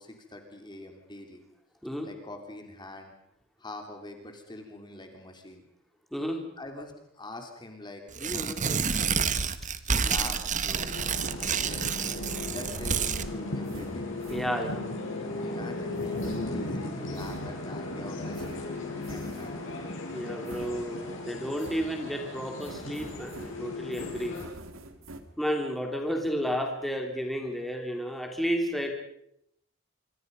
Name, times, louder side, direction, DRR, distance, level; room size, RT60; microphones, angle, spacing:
voice 1, 0.0-1.4 2.0-3.1 3.6-5.6 6.6-9.4 9.8-10.9 11.4-11.8 12.4-14.1 15.4-18.6 18.9-19.7, left 2 dB, 20° left, 4 dB, 3.1 m, -44 dB
voice 2, 6.1-6.4 12.3-12.5 14.3-14.8 20.1-24.3 25.4-28.9, equal, ahead, 2 dB, 3.2 m, -32 dB
Tearing, 8.1-13.3, right 6 dB, 40° right, 1.3 m, -29 dB
sound 1, 10.7-24.4, left 2 dB, 65° left, 7.8 m, -36 dB
sound 2, 13.4-14.9 16.0-17.9 18.3-19.8 20.5-21.3 21.6-22.2 22.6-25.2, right 2 dB, 80° right, 2.5 m, -47 dB
26.0 x 25.0 x 5.4 m, 0.75 s
head